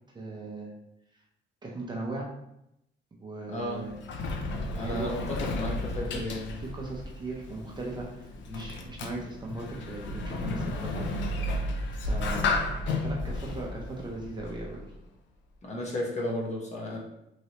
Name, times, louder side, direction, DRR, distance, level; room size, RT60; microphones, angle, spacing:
voice 1, 0.1-0.7 1.6-2.3 3.2-4.0 4.7-5.1 6.0-6.2 6.6-11.2 11.4-11.6 12.0-12.5 12.9-14.8, right 2 dB, 25° right, -2 dB, 0.6 m, -38 dB
Sliding door, 3.5-15.0, left 2 dB, 75° left, 0.5 m, -33 dB
voice 2, 3.5-3.8 4.7-6.6 8.5-8.7 15.6-17.0, left 1 dB, 35° left, -2 dB, 0.8 m, -33 dB
3.2 x 2.6 x 2.9 m, 0.82 s
cardioid pair, 120°, 19 cm